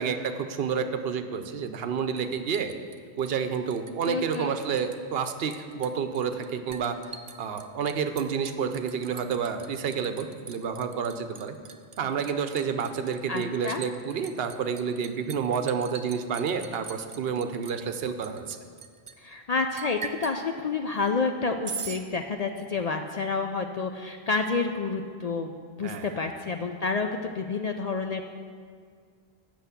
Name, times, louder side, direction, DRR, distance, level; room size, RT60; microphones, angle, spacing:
voice 1, 0.0-2.7 3.2-7.0 7.4-11.6 12.0-18.6 25.8-26.3, right 6 dB, 70° right, 8 dB, 0.9 m, -29 dB
Liquid, 2.2-4.1 4.3-5.0 5.2-19.1 19.8-20.4 21.6-22.0, right 6 dB, 45° right, 0.4 m, -42 dB
voice 2, 4.0-4.5 13.3-13.8 19.2-28.3, left 4 dB, 55° left, 4 dB, 0.4 m, -29 dB
8.0 x 6.3 x 8.1 m, 2.1 s
omnidirectional pair, 1.1 m